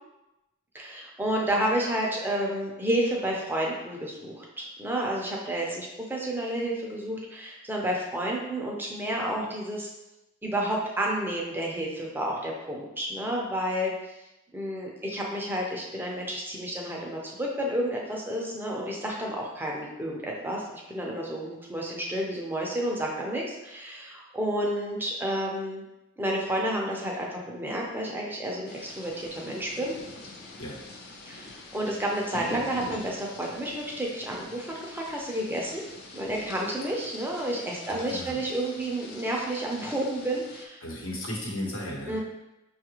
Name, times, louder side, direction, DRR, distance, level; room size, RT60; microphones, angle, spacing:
voice 1, 0.7-9.9 10.4-13.9 14.5-25.8 26.2-29.9 31.3-35.8 36.1-40.8 42.1-42.2, right 1 dB, 10° right, -2 dB, 0.5 m, -30 dB
sound 1, 28.7-40.7, left 2 dB, 50° left, 0.5 m, -44 dB
voice 2, 37.9-38.4 40.8-42.2, left 1 dB, 75° left, -3 dB, 1.1 m, -35 dB
5.2 x 2.4 x 3.0 m, 0.97 s
head